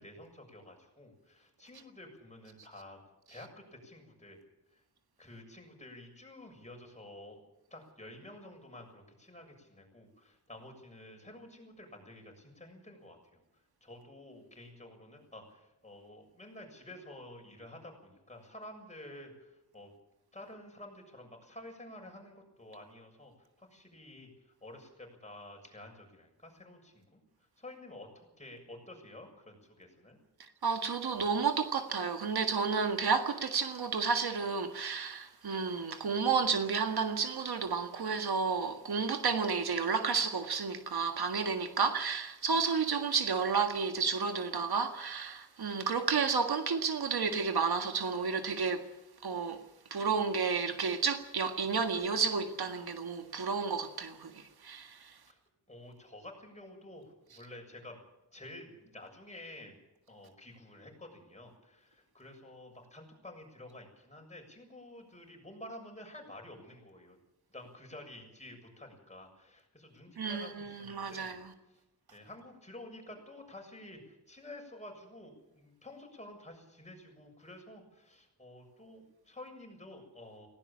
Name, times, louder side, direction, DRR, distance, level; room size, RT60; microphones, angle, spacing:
voice 1, 0.0-3.0 3.3-4.4 4.7-4.8 5.2-7.4 7.7-13.4 13.8-19.9 20.3-23.3 23.6-24.3 24.6-27.2 27.6-30.2 55.2-55.4 55.7-58.0 58.3-59.8 60.1-67.2 67.5-71.3 72.1-80.5, left 1 dB, 15° left, 7.0 m, -50 dB
voice 2, 30.6-48.8 49.2-49.6 49.9-55.1 70.2-71.5, right 5 dB, 65° right, 1.8 m, -31 dB
18.5 x 17.0 x 8.8 m
wide cardioid pair, 90°, 40 cm